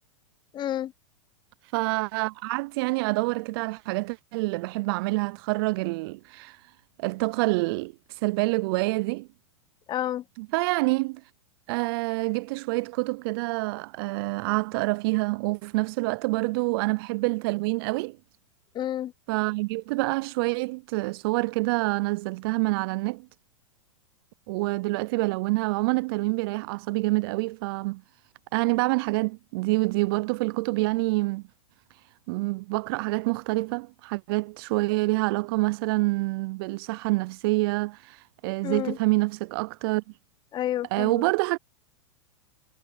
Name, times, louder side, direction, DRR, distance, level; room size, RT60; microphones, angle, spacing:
voice 1, 0.5-0.9 9.9-10.2 18.7-19.1 38.6-39.0 40.5-41.2, left 12 dB, 25° left, 0.9 m, -30 dB
voice 2, 1.7-6.6 7.0-7.9 8.2-9.3 10.4-11.2 11.7-18.2 19.3-23.3 24.5-28.0 28.5-31.4 32.3-38.2 38.4-40.0 40.9-41.6, right 25 dB, 50° right, 0.5 m, -27 dB
hypercardioid pair, 110°, 16 cm